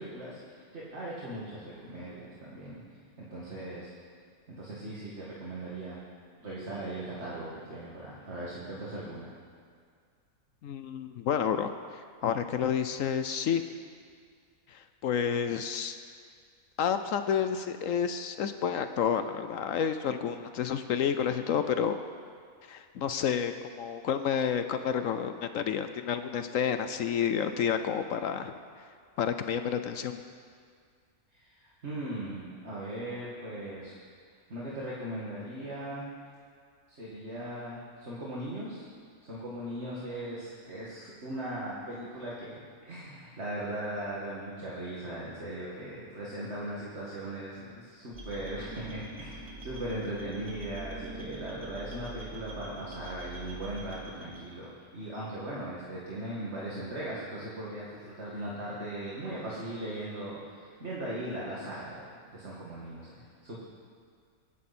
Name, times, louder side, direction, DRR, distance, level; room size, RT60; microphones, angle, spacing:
voice 1, 0.0-2.8 3.2-3.9 4.5-6.0 6.4-9.3 31.3-33.9 34.5-36.0 36.9-38.9 39.2-63.6, right 1 dB, 50° right, -7 dB, 2.4 m, -39 dB
voice 2, 10.6-11.7 12.2-13.6 14.7-15.9 16.8-22.0 22.7-28.5 29.2-30.2, left 8 dB, 70° left, 9 dB, 1.0 m, -30 dB
sound 1, 48.1-54.4, right 1 dB, 15° right, 2.5 m, -44 dB
24.0 x 11.0 x 4.3 m, 2.1 s
omnidirectional pair, 1.5 m